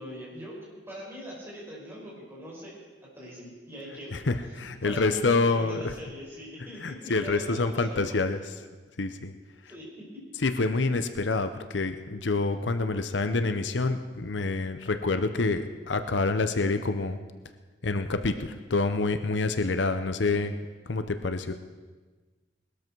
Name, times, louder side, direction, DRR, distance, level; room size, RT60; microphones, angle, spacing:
voice 1, 0.0-2.8 3.1-4.2 4.6-8.1 9.7-9.9 10.1-10.2, equal, 15° right, -5 dB, 5.9 m, -42 dB
voice 2, 4.1-5.9 6.8-8.5 9.0-9.3 10.4-17.2 17.8-20.5 20.9-21.5, left 3 dB, 75° left, 9 dB, 0.8 m, -27 dB
20.0 x 13.0 x 4.7 m, 1.3 s
head